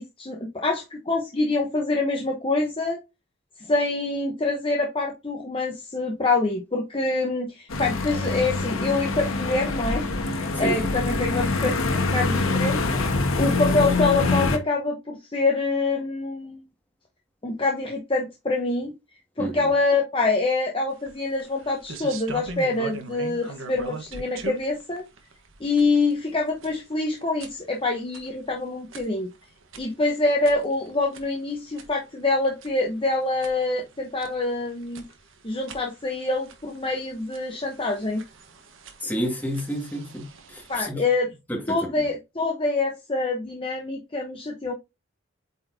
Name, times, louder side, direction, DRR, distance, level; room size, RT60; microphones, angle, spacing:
voice 1, 0.0-3.0 3.6-16.6 17.4-18.9 19.4-25.0 25.6-29.3 29.8-35.0 35.4-38.2 40.7-41.3 41.7-44.7, left 3 dB, 25° left, 0.9 m, -26 dB
sound 1, 7.7-14.6, left 3 dB, 75° left, 1.3 m, -25 dB
voice 2, 19.4-19.7 39.0-40.2 40.5-41.0 41.5-41.6 42.0-42.1, equal, 10° left, 1.9 m, -29 dB
sound 2, 20.9-40.8, right 2 dB, 65° right, 1.2 m, -43 dB
8.4 x 4.3 x 2.7 m
head